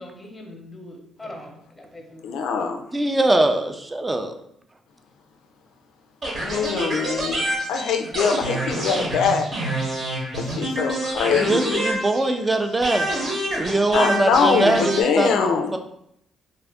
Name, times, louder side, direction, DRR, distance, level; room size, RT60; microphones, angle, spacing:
voice 1, 0.0-2.5, left 1 dB, 10° left, 1 dB, 0.7 m, -41 dB
voice 2, 2.2-2.8 6.4-9.5 10.4-11.8 13.9-15.7, left 6 dB, 85° left, 5 dB, 0.3 m, -23 dB
voice 3, 2.9-4.3 11.3-13.1 13.6-15.8, right 2 dB, 20° right, 6 dB, 0.3 m, -22 dB
sound 1, 6.2-12.5 12.8-15.0, right 1 dB, 50° right, 1.0 m, -27 dB
2.5 x 2.4 x 3.4 m, 0.75 s
cardioid pair, 90°, 0 cm